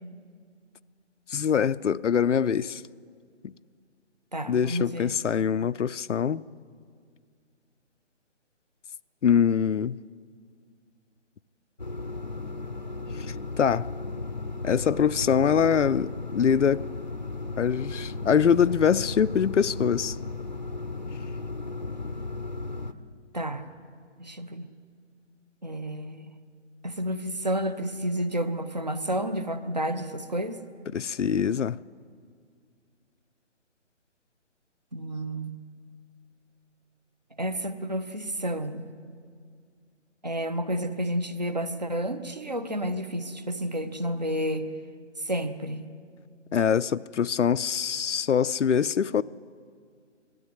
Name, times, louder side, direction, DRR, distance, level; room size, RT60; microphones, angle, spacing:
voice 1, 1.3-2.8 4.5-6.4 9.2-10.0 13.6-13.9 14.6-16.9 17.6-20.2 30.9-31.8 46.5-49.2, left 7 dB, 75° left, 0.6 m, -24 dB
voice 2, 4.3-5.1 23.3-23.6 24.2-24.7 25.6-26.3 26.8-30.6 34.9-35.6 37.4-38.8 40.2-44.6 45.3-45.8, equal, 35° right, 0.8 m, -30 dB
sound 1, 11.8-22.9, left 3 dB, 35° left, 0.7 m, -35 dB
20.0 x 13.5 x 9.8 m
hypercardioid pair, 180°, 37 cm